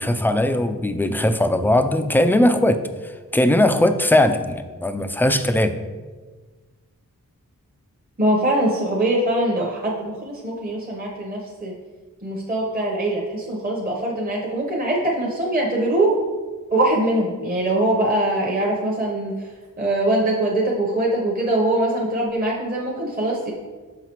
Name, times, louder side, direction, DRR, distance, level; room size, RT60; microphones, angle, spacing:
voice 1, 0.0-5.7, left 1 dB, 5° left, 9 dB, 0.3 m, -19 dB
voice 2, 8.2-11.7 12.2-16.2 16.7-19.5 19.8-23.5, right 1 dB, 25° right, -3 dB, 0.9 m, -22 dB
5.7 x 5.7 x 3.0 m, 1.4 s
wide cardioid pair, 55°, 35 cm